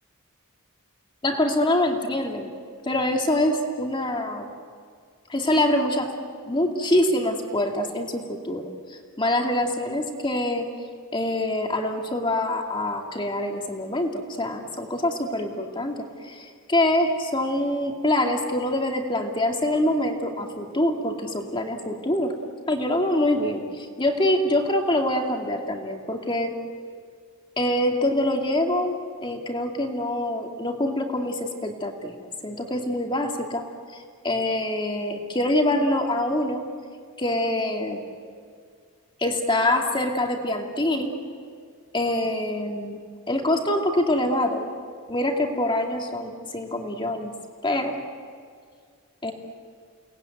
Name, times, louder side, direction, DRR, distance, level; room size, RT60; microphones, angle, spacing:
voice 1, 1.2-2.5 2.8-4.5 5.3-6.1 6.5-8.6 8.9-10.7 11.1-22.3 22.7-26.6 27.6-33.6 34.2-36.6 37.2-38.0 39.2-41.1 41.9-43.0 43.3-44.6 45.1-47.3 47.6-48.0 49.2-49.3, left 1 dB, 20° left, 2 dB, 2.4 m, -25 dB
30.0 x 19.5 x 9.3 m, 2.1 s
head